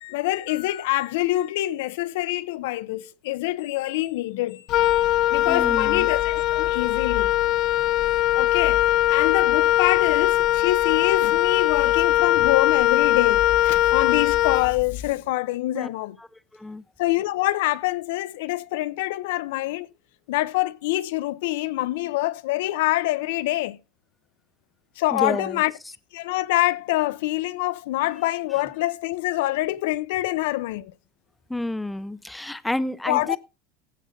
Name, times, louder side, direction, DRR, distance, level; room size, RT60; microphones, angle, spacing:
voice 1, 0.0-4.6 5.3-7.3 8.3-8.8 9.1-16.2 17.0-19.9 20.3-23.8 25.0-25.7 26.1-30.9 33.1-33.4, left 17 dB, 90° left, 0.6 m, -25 dB
Wind instrument woodwind instrument, 4.7-15.1, left 14 dB, 40° left, 0.7 m, -21 dB
voice 2, 5.5-6.1 15.7-15.9 16.6-16.8 25.1-25.6 31.5-33.4, left 1 dB, 5° left, 0.4 m, -29 dB
16.0 x 6.5 x 3.7 m
cardioid pair, 175°, 0 cm